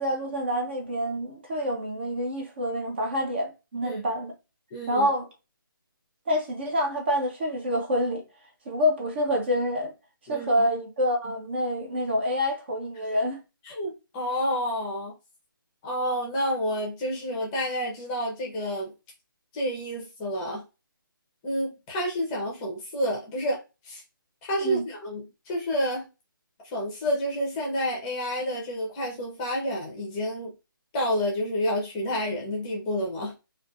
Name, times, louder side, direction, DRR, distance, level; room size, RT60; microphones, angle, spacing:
voice 1, 0.0-4.3 4.9-5.3 6.3-8.2 8.7-9.9 10.3-13.4 24.6-24.8, equal, 30° right, 0.5 m, -27 dB
voice 2, 4.7-5.1 10.3-10.5 13.6-15.1 15.8-18.9 19.5-20.6 21.4-23.6 23.8-24.0 24.4-26.1 26.6-30.5 30.9-33.3, equal, 15° left, 0.6 m, -29 dB
2.3 x 2.3 x 2.5 m
figure-of-eight pair, 155°, 12 cm